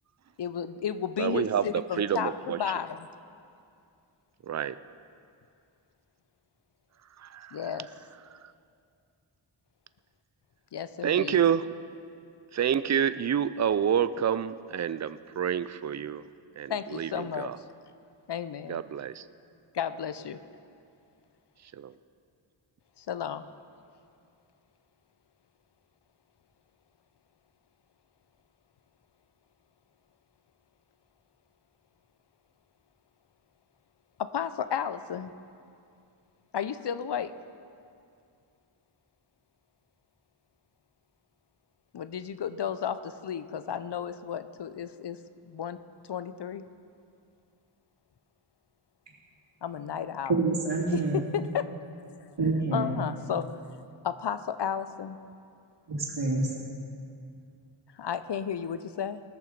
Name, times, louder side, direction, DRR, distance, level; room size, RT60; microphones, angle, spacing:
voice 1, 0.4-3.1 7.5-7.9 10.7-11.4 16.7-17.5 18.3-18.8 19.7-20.4 23.0-23.4 34.2-35.3 36.5-37.3 41.9-45.2 45.5-45.8 46.1-46.6 49.6-50.3 50.9-51.7 52.2-52.3 52.7-53.8 54.0-55.2 57.9-59.2, left 8 dB, 55° left, 12 dB, 0.6 m, -33 dB
voice 2, 1.2-1.6 2.0-2.7 4.4-4.8 7.2-7.6 8.3-8.4 11.0-11.7 12.5-16.3 16.6-17.6 18.7-19.2 21.7-21.9, right 8 dB, 35° right, 14 dB, 0.4 m, -28 dB
voice 3, 50.3-51.2 52.4-53.0 55.9-56.5, right 3 dB, 60° right, -5 dB, 3.1 m, -27 dB
19.5 x 6.7 x 5.1 m, 2.5 s
wide cardioid pair, 55°, 50 cm